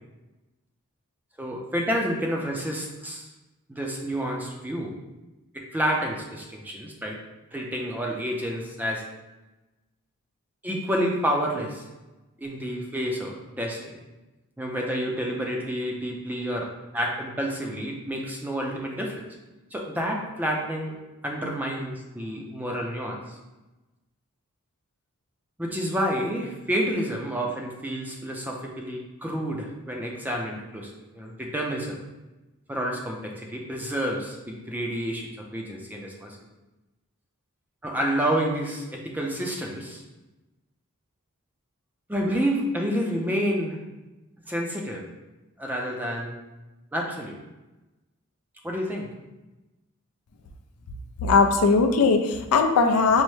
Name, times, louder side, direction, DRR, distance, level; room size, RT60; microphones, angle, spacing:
voice 1, 1.4-3.3 3.7-4.9 5.5-7.2 7.5-9.0 10.6-11.8 12.4-13.9 14.6-19.2 19.7-21.0 21.2-23.4 25.6-32.0 32.7-36.4 37.8-40.0 42.1-43.8 44.5-45.0 45.6-46.4 46.9-47.4 48.6-49.1, equal, 10° right, -1 dB, 0.4 m, -29 dB
voice 2, 51.2-53.2, left 4 dB, 85° left, 5 dB, 0.4 m, -19 dB
5.4 x 2.0 x 3.1 m, 1.1 s
head